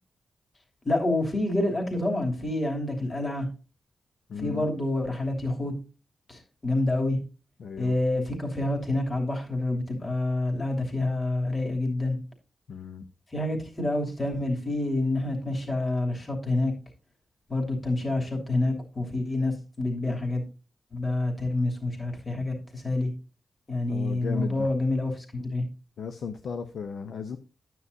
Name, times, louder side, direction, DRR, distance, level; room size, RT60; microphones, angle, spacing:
voice 1, 0.8-3.5 4.4-5.7 6.3-7.2 7.8-12.2 13.3-16.7 17.5-20.4 20.9-23.1 23.7-25.6, left 2 dB, 40° left, 2 dB, 2.9 m, -27 dB
voice 2, 4.3-4.7 7.6-8.0 12.7-13.1 23.9-24.7 26.0-27.4, left 6 dB, 80° left, 7 dB, 0.7 m, -36 dB
9.9 x 9.3 x 2.7 m, 0.33 s
cardioid pair, 55°, 0 cm